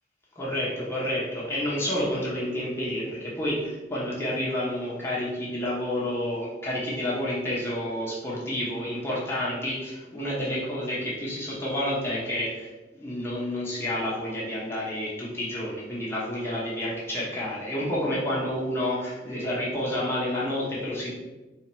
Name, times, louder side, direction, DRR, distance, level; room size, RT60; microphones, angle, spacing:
voice 1, 0.4-21.1, left 1 dB, 15° left, -7 dB, 1.0 m, -29 dB
4.1 x 2.8 x 4.5 m, 1.1 s
head